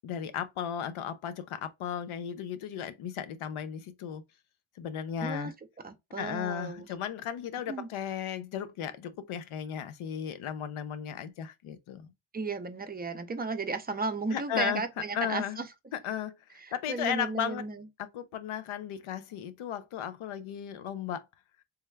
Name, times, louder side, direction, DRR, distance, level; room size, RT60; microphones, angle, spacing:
voice 1, 0.0-4.2 4.8-5.5 6.2-12.1 14.3-14.8 15.1-15.6 15.9-16.4 16.7-17.6 18.0-21.3, left 9 dB, 85° left, 0.6 m, -35 dB
voice 2, 5.2-5.5 5.8-6.8 7.7-7.9 12.3-15.7 16.6-17.9, right 3 dB, 20° right, 0.5 m, -34 dB
3.4 x 2.2 x 3.2 m
cardioid pair, 80°, 48 cm